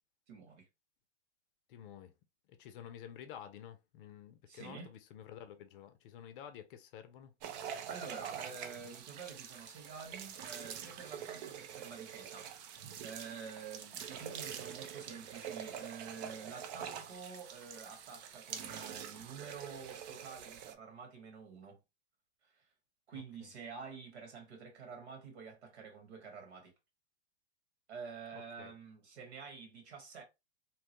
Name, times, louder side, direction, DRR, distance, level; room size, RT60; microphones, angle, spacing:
voice 1, 0.3-0.7 4.5-4.9 7.9-12.5 13.0-21.8 22.4-22.6 23.1-26.7 27.9-30.2, right 5 dB, 65° right, 1.5 m, -48 dB
voice 2, 1.7-2.1 2.5-7.3 14.2-14.3 23.1-23.5 28.3-28.7, left 9 dB, 50° left, 0.6 m, -51 dB
sound 1, 7.4-20.7, right 9 dB, 40° right, 0.5 m, -45 dB
3.0 x 2.1 x 2.9 m
hypercardioid pair, 120°, 35 cm